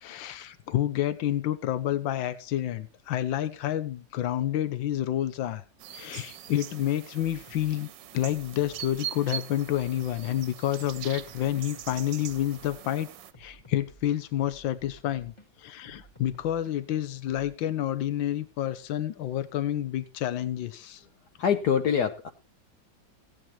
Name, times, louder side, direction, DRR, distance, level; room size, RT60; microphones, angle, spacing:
voice 1, 0.0-5.6 5.9-13.1 13.4-15.3 15.6-21.0, left 12 dB, 85° left, 1.6 m, -29 dB
sound 1, 5.8-13.3, right 11 dB, 70° right, 1.4 m, -42 dB
sound 2, 7.2-7.9 8.3-9.1 9.6-10.4 10.8-12.9 13.3-15.5 15.8-17.6, right 1 dB, 15° left, 1.4 m, -53 dB
voice 2, 21.4-22.3, left 8 dB, 65° left, 1.3 m, -24 dB
16.0 x 9.1 x 4.3 m
omnidirectional pair, 2.1 m